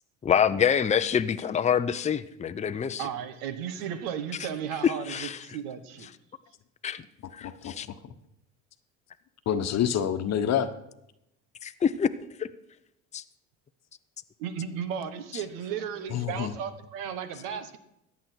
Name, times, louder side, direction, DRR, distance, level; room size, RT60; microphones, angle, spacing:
voice 1, 0.2-3.0 4.8-5.4 6.8-7.0 7.3-7.9 11.6-12.1 12.4-12.5 13.1-13.2, left 8 dB, 20° left, 10 dB, 0.6 m, -26 dB
voice 2, 3.0-6.1 14.4-17.8, right 8 dB, 70° right, 11 dB, 1.4 m, -35 dB
voice 3, 7.4-8.1 9.5-10.7 16.1-16.5, left 9 dB, 50° left, 9 dB, 1.2 m, -28 dB
14.5 x 9.4 x 4.6 m, 0.82 s
supercardioid pair, 80°, 35 cm